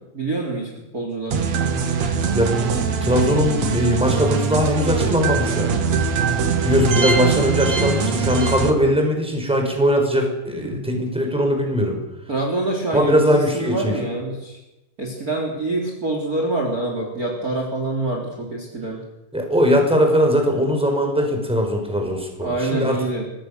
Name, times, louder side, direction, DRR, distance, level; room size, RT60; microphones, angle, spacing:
voice 1, 0.0-1.8 8.0-8.3 10.6-10.8 12.3-14.6 15.0-19.0 22.4-23.3, right 2 dB, 25° right, 0 dB, 3.6 m, -26 dB
sound 1, 1.3-8.7, right 5 dB, 55° right, 2.9 m, -22 dB
voice 2, 3.0-5.7 6.6-12.0 12.9-14.0 19.3-23.0, equal, ahead, 3 dB, 4.9 m, -20 dB
25.0 x 20.0 x 6.8 m, 0.93 s
omnidirectional pair, 3.8 m